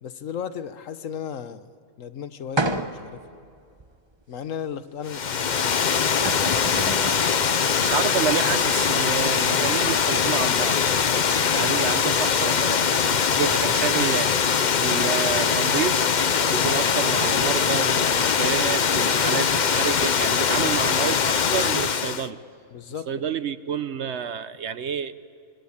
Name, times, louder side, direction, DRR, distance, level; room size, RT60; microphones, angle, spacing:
voice 1, 0.0-1.7 2.0-3.2 4.3-5.8 22.7-23.1, left 8 dB, 80° left, 12 dB, 1.3 m, -35 dB
sound 1, 2.6-3.2 3.8-3.9 5.7-5.8 6.1-7.3, right 2 dB, 20° right, 1.1 m, -29 dB
Water, 5.1-22.3, left 6 dB, 45° left, 0.7 m, -22 dB
voice 2, 7.8-10.8 11.5-14.4 14.8-16.0 16.5-22.4 23.1-25.1, right 7 dB, 60° right, 14 dB, 1.1 m, -29 dB
27.5 x 24.5 x 8.7 m, 2.4 s
omnidirectional pair, 1.4 m